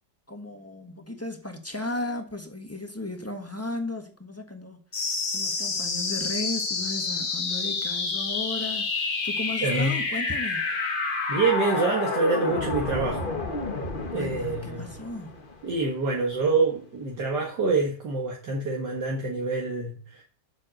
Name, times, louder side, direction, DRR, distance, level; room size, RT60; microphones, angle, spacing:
voice 1, 0.3-4.8 5.3-10.7 14.1-15.3, left 2 dB, 10° left, 1.0 m, -35 dB
sound 1, 4.9-15.9, left 3 dB, 30° left, 1.2 m, -29 dB
voice 2, 9.6-10.0 11.3-13.2 14.1-14.9 15.6-20.2, right 3 dB, 60° right, 2.2 m, -26 dB
7.5 x 7.3 x 7.7 m
omnidirectional pair, 2.1 m